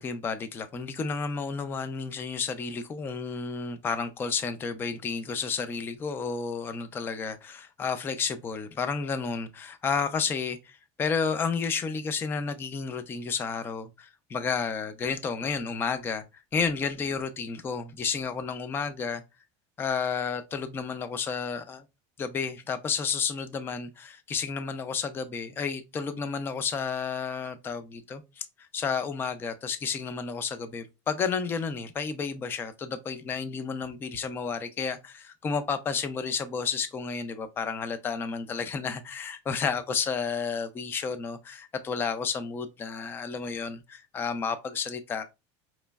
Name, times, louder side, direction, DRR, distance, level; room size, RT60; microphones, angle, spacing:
voice 1, 0.0-16.2 16.5-19.2 19.8-21.8 22.2-45.2, left 5 dB, 15° left, 0.3 m, -31 dB
4.9 x 3.0 x 2.2 m
cardioid pair, 160°, 15 cm